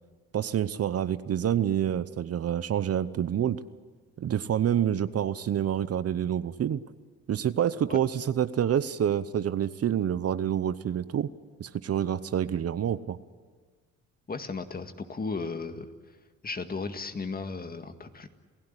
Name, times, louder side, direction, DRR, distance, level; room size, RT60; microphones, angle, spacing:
voice 1, 0.3-3.6 4.2-6.8 7.3-11.3 11.6-13.2, right 9 dB, 50° right, 14 dB, 0.9 m, -27 dB
voice 2, 14.3-15.9 16.4-18.3, left 4 dB, 30° left, 7 dB, 1.9 m, -35 dB
28.5 x 16.0 x 9.9 m, 1.5 s
cardioid pair, 90°, 30 cm